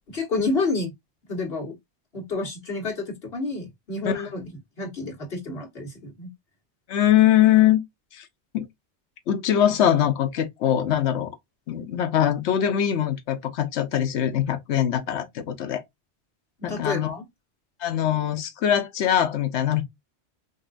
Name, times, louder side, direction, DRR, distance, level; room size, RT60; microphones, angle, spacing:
voice 1, 0.1-0.9 1.3-1.7 2.1-4.4 4.8-6.3 16.6-17.2, left 3 dB, 60° left, 1.7 m, -29 dB
voice 2, 6.9-7.8 8.1-8.3 8.5-8.7 9.3-11.3 11.7-15.8 16.6-17.1 17.8-19.8, left 11 dB, 80° left, 1.0 m, -22 dB
5.2 x 2.4 x 2.5 m
omnidirectional pair, 1.1 m